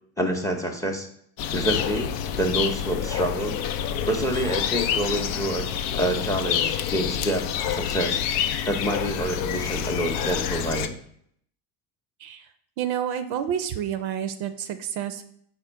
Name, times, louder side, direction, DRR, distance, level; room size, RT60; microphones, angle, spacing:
voice 1, 0.2-1.1 1.5-2.1 2.4-3.6 4.1-5.7 5.9-8.2 8.7-10.9, right 1 dB, 5° left, 4 dB, 0.6 m, -27 dB
sound 1, 1.4-10.9, left 9 dB, 75° left, 0.5 m, -27 dB
voice 2, 12.8-15.2, right 9 dB, 55° right, 10 dB, 0.5 m, -29 dB
4.9 x 2.2 x 4.4 m, 0.67 s
hypercardioid pair, 75°, 47 cm